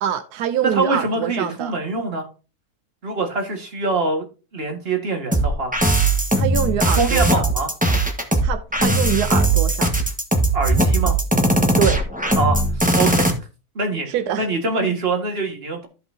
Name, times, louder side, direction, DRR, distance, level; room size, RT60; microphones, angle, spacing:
voice 1, 0.0-1.7 6.3-7.5 8.4-9.9 11.8-12.0 14.1-14.5, right 9 dB, 85° right, 1.2 m, -24 dB
voice 2, 0.7-2.3 3.0-4.2 4.5-5.7 6.9-7.7 10.5-11.2 12.4-13.3 13.8-14.1 14.4-15.9, right 3 dB, 40° right, 2.1 m, -24 dB
sound 1, 5.3-13.3, right 2 dB, 5° right, 1.3 m, -19 dB
14.5 x 5.5 x 2.8 m
omnidirectional pair, 1.6 m